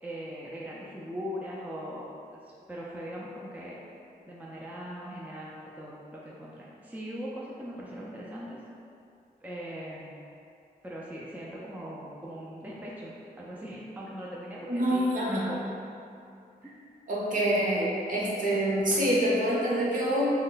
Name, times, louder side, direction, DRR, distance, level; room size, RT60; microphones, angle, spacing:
voice 1, 0.0-3.8 4.3-8.6 9.4-10.2 10.8-15.6 16.6-16.8, equal, 10° right, -6 dB, 0.5 m, -40 dB
voice 2, 14.7-15.5 17.1-20.3, equal, 55° right, -7 dB, 1.0 m, -26 dB
3.1 x 2.2 x 3.8 m, 2.6 s
cardioid pair, 65°, 17 cm